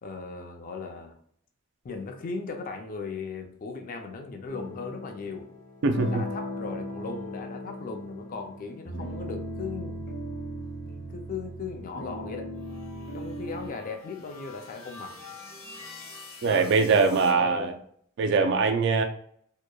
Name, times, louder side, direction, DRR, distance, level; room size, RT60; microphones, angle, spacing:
voice 1, 0.0-1.1 1.8-5.5 6.1-10.0 10.9-12.5 13.1-15.2 16.4-16.8 17.0-17.7, left 4 dB, 45° left, 5 dB, 0.4 m, -37 dB
sound 1, 4.5-13.7, equal, 60° left, 0.8 m, -38 dB
voice 2, 5.8-6.2 16.4-17.7 18.2-19.0, right 4 dB, 60° right, 5 dB, 0.3 m, -22 dB
sound 2, 12.6-17.3, left 3 dB, 90° left, 0.9 m, -46 dB
2.9 x 2.1 x 2.2 m, 0.63 s
head